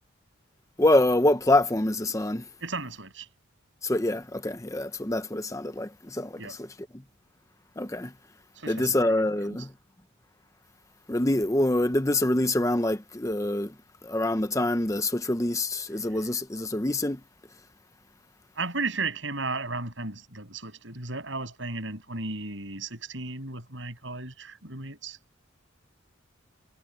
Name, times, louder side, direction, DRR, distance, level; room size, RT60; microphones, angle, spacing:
voice 1, 0.8-2.4 3.8-6.4 7.8-8.1 8.7-9.7 11.1-13.7 14.0-17.2, left 1 dB, 15° left, 0.7 m, -25 dB
voice 2, 2.6-3.3 6.4-6.6 8.6-9.6 18.6-25.2, right 3 dB, 65° right, 7.5 m, -35 dB
head